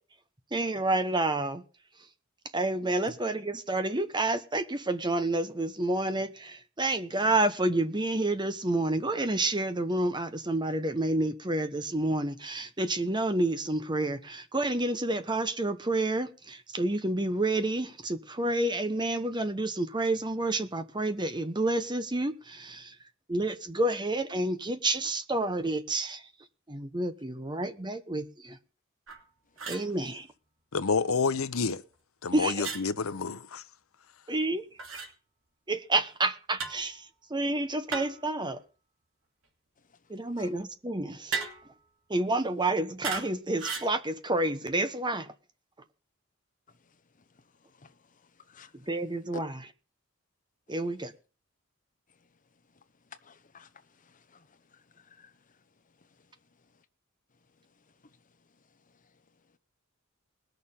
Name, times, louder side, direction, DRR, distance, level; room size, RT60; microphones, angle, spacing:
voice 1, 0.5-1.6 2.5-22.9 23.3-26.2 26.7-28.6 29.7-30.3 32.3-32.5 34.3-34.6 35.7-37.0 37.3-38.6 40.1-41.4 42.1-45.3 48.9-49.5 50.7-51.1, right 2 dB, 20° right, 1.1 m, -29 dB
sound 1, 29.1-29.2 29.6-29.9 32.6-32.8 34.8-35.1 36.6-36.8 37.9-38.3 41.3-41.7 43.0-43.3 43.6-43.9, right 5 dB, 75° right, 2.8 m, -35 dB
voice 2, 30.7-31.8 32.2-33.6, left 4 dB, 85° left, 0.8 m, -29 dB
voice 3, 53.2-53.7 54.0-55.3, left 4 dB, 40° left, 0.9 m, -50 dB
20.0 x 6.7 x 5.5 m
head